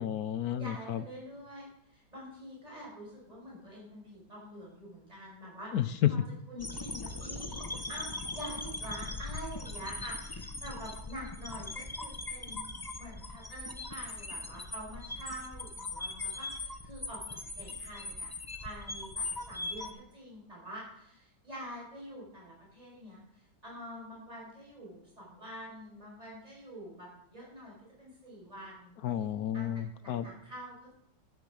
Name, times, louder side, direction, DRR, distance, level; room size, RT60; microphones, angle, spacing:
voice 1, 0.0-1.0 5.7-6.1 29.0-30.2, left 11 dB, 65° left, 13 dB, 1.1 m, -31 dB
voice 2, 0.6-6.2 6.5-12.6 13.0-18.3 18.6-28.9 29.5-30.9, equal, 20° right, -4 dB, 5.7 m, -46 dB
sound 1, 6.6-19.9, left 2 dB, 15° left, 0.7 m, -40 dB
10.5 x 10.5 x 6.4 m, 0.77 s
omnidirectional pair, 2.0 m